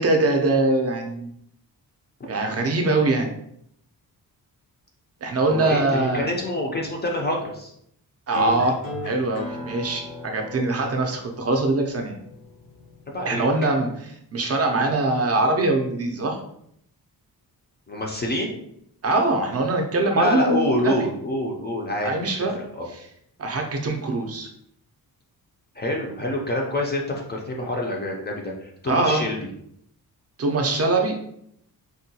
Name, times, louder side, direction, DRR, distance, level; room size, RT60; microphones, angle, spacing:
voice 1, 0.0-1.3 2.3-3.3 5.2-6.3 8.3-8.8 9.0-12.1 13.2-16.4 19.0-21.1 22.0-22.6 23.4-24.5 28.9-29.2 30.4-31.1, right 2 dB, 40° right, 2 dB, 0.4 m, -22 dB
voice 2, 5.5-7.7 13.1-13.4 17.9-18.6 20.1-22.9 25.8-29.4, left 1 dB, 30° left, 0 dB, 0.3 m, -27 dB
sound 1, 8.3-13.3, left 3 dB, 70° left, 0.7 m, -36 dB
3.6 x 2.2 x 2.7 m, 0.72 s
wide cardioid pair, 175°, 37 cm